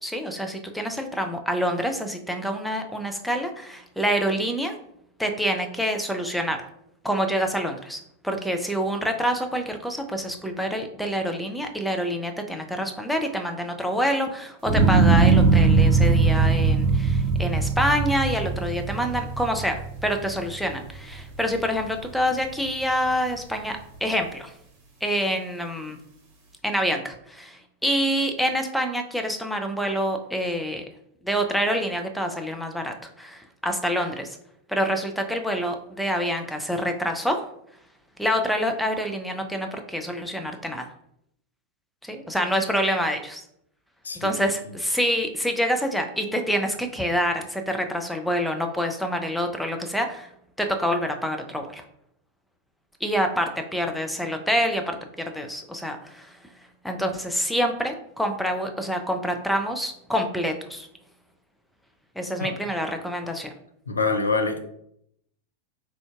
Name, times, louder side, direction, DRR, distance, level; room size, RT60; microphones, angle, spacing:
voice 1, 0.0-4.8 5.2-6.6 7.0-24.5 25.0-26.0 26.6-30.8 31.2-34.4 34.7-37.4 38.2-40.9 42.0-43.4 44.2-50.3 50.6-51.8 53.0-56.4 56.8-60.9 62.2-63.5, equal, ahead, 0.5 m, -27 dB
sound 1, 14.7-21.0 21.4-22.0, right 4 dB, 35° right, 1.0 m, -20 dB
voice 2, 44.0-44.4 62.4-62.6 63.9-64.6, left 3 dB, 75° left, 0.4 m, -25 dB
3.7 x 3.4 x 2.4 m
figure-of-eight pair, 90°, 0 cm